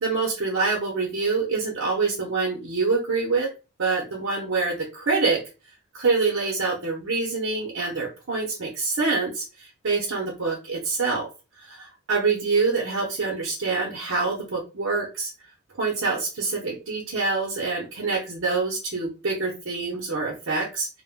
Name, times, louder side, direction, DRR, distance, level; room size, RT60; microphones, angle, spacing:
voice 1, 0.0-3.5 3.8-5.4 5.9-11.3 11.6-15.3 15.8-20.9, right 4 dB, 75° right, -2 dB, 0.7 m, -26 dB
2.1 x 2.1 x 3.4 m, 0.31 s
head